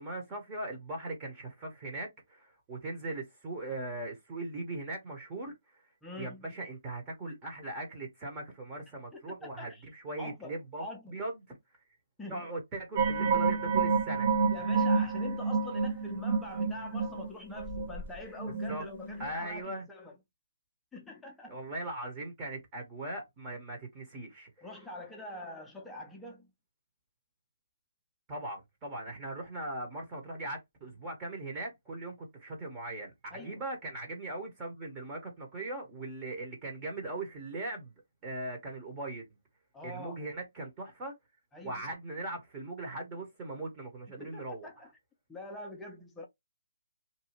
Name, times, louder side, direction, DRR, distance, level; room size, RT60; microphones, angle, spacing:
voice 1, 0.0-5.8 6.2-11.6 12.3-14.3 18.7-18.8 19.2-19.9 21.5-24.7 28.3-37.9 38.2-39.3 39.8-41.1 41.6-44.7, right 2 dB, 20° right, 0.9 m, -39 dB
voice 2, 6.0-6.5 9.1-9.8 10.2-11.2 12.2-12.5 14.5-20.1 20.9-21.6 24.6-26.5 33.3-33.6 39.7-40.2 41.5-41.8 44.2-44.9 45.3-46.3, left 2 dB, 5° left, 0.5 m, -44 dB
sound 1, 13.0-19.3 19.6-19.7, right 4 dB, 50° right, 0.8 m, -29 dB
2.7 x 2.3 x 2.9 m
hypercardioid pair, 155°, 0 cm